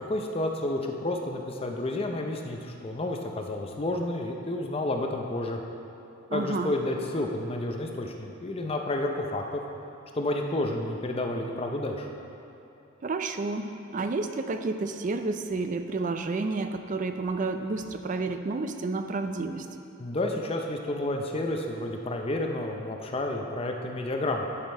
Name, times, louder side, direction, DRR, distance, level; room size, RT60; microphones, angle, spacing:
voice 1, 0.0-5.6 6.3-9.6 10.1-12.1 20.0-24.5, left 1 dB, 25° left, 2 dB, 0.5 m, -30 dB
voice 2, 6.3-6.8 13.0-19.7, right 3 dB, 35° right, 7 dB, 0.4 m, -30 dB
11.0 x 5.2 x 4.3 m, 2.9 s
head